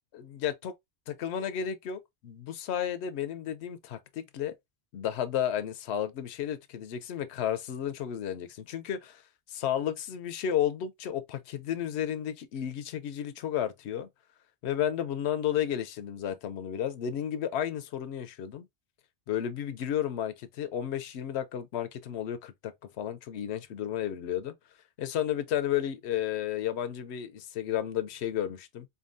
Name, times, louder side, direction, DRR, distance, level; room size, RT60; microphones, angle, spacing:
voice 1, 0.1-0.7 1.1-4.5 4.9-9.2 9.5-14.1 14.6-18.6 19.3-24.5 25.0-28.9, left 10 dB, 85° left, 0.9 m, -32 dB
4.0 x 3.6 x 2.5 m
omnidirectional pair, 1.1 m